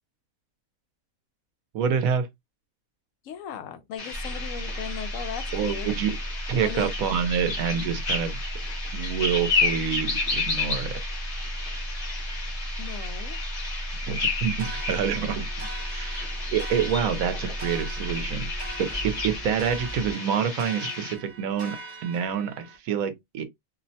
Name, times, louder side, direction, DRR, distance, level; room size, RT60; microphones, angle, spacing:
voice 1, 1.7-2.3 5.5-6.1 6.5-8.4 8.9-11.0 14.1-23.4, right 7 dB, 85° right, 1.1 m, -27 dB
voice 2, 3.2-5.9 6.6-6.9 12.8-13.4, left 8 dB, 75° left, 0.9 m, -37 dB
sound 1, 4.0-21.1, left 3 dB, 45° left, 0.9 m, -32 dB
sound 2, 4.1-20.1, right 1 dB, 15° left, 0.9 m, -35 dB
sound 3, 14.6-22.8, right 2 dB, 40° right, 0.8 m, -42 dB
2.8 x 2.0 x 2.6 m
omnidirectional pair, 1.4 m